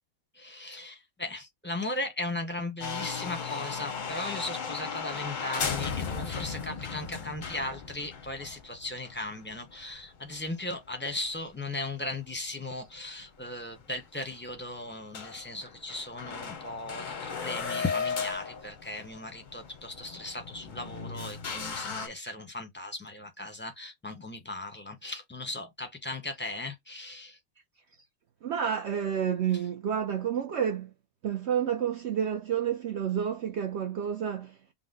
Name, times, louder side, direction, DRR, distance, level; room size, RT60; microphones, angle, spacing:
voice 1, 0.3-27.4, left 2 dB, 10° left, 0.7 m, -37 dB
sound 1, 2.8-11.0 11.3-11.4 11.9-12.0 13.0-13.1 13.3-13.4 13.8-13.9 14.2-14.6 14.9-15.0 15.1-22.1, left 5 dB, 45° left, 0.6 m, -36 dB
voice 2, 28.4-30.9 31.2-34.6, right 8 dB, 65° right, 0.7 m, -29 dB
5.6 x 2.1 x 3.8 m
omnidirectional pair, 1.5 m